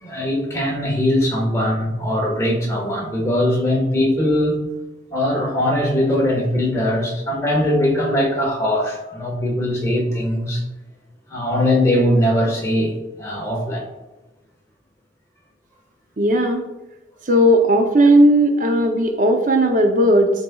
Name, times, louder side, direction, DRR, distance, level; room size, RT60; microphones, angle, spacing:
voice 1, 0.0-4.6 5.1-10.6 11.3-13.8, left 1 dB, 15° left, 1.3 m, -20 dB
voice 2, 16.2-16.6 17.3-20.3, right 1 dB, 45° right, 0.6 m, -15 dB
11.5 x 4.1 x 2.3 m
head